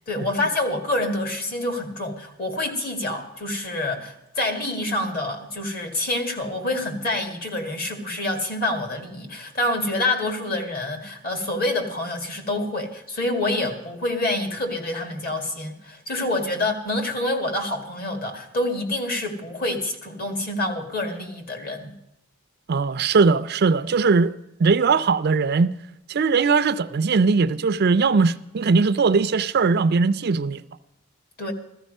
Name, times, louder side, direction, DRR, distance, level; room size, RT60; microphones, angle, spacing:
voice 1, 0.1-21.9 31.4-31.5, left 2 dB, 45° left, 2.2 m, -27 dB
voice 2, 22.7-24.3 24.6-25.7 26.1-30.6, right 4 dB, 50° right, 0.4 m, -20 dB
15.5 x 13.5 x 5.4 m
head